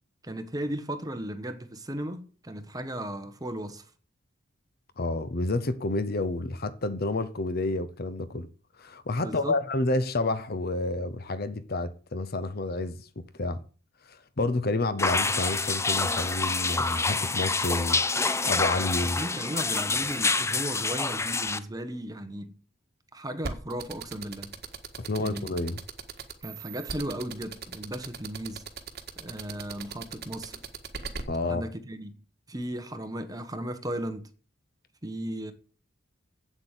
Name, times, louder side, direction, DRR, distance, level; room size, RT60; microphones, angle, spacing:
voice 1, 0.2-3.8 9.2-9.6 19.2-22.5 23.1-24.5 25.2-25.5 26.4-28.6 29.2-30.6 31.5-32.1 32.5-34.3 35.0-35.5, right 1 dB, 20° right, 1.3 m, -36 dB
voice 2, 5.0-8.5 8.8-13.6 14.1-18.0 18.5-19.2 25.0-25.8 31.3-31.6, left 2 dB, 50° left, 0.9 m, -29 dB
sound 1, 15.0-21.6, left 3 dB, 15° left, 0.6 m, -27 dB
sound 2, 23.4-31.2, right 5 dB, 55° right, 1.7 m, -37 dB
8.3 x 8.0 x 9.0 m
head